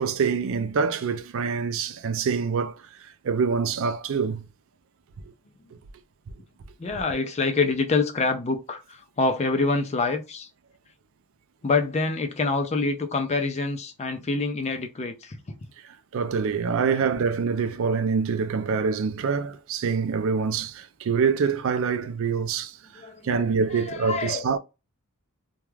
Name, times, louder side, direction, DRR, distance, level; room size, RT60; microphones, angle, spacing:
voice 1, 0.0-2.8 3.2-4.4 16.1-24.6, right 5 dB, 60° right, 0.4 m, -25 dB
voice 2, 6.8-10.5 11.6-15.4 16.9-17.1 23.0-24.6, left 3 dB, 30° left, 0.4 m, -26 dB
2.3 x 2.2 x 3.1 m
head